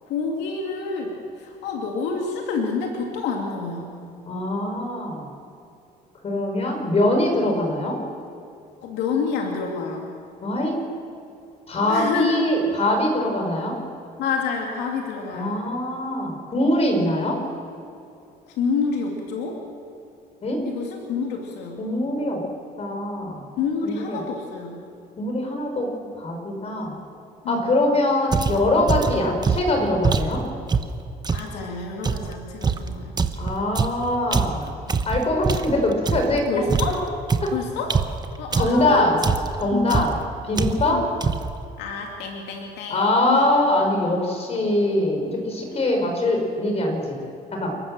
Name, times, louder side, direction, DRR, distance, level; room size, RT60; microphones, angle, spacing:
voice 1, 0.1-4.0 8.8-10.1 11.9-12.6 14.2-15.7 18.5-19.6 20.6-21.8 23.6-24.8 27.4-27.8 31.3-33.2 36.5-37.0 37.5-38.0 38.4-39.1 39.7-40.1 40.9-41.1 41.8-43.5, left 5 dB, 90° left, 1 dB, 2.7 m, -28 dB
voice 2, 4.3-5.3 6.2-8.0 10.4-10.8 11.7-13.8 15.3-17.4 20.4-20.6 21.8-22.4 22.8-23.5 23.8-24.2 25.2-25.9 26.2-26.9 27.5-30.4 33.4-34.7 35.1-36.5 37.4-37.5 38.6-39.2 39.6-40.1 40.5-41.0 42.9-47.2 47.5-47.7, left 1 dB, 40° left, 2 dB, 5.5 m, -23 dB
sound 1, 28.3-31.5 32.0-36.4 36.7-38.9 39.2-39.6 39.9-40.2 40.5-41.0 41.2-41.6, right 5 dB, 25° right, 1.1 m, -24 dB
28.5 x 13.0 x 7.7 m, 2.6 s
cardioid pair, 110°, 17 cm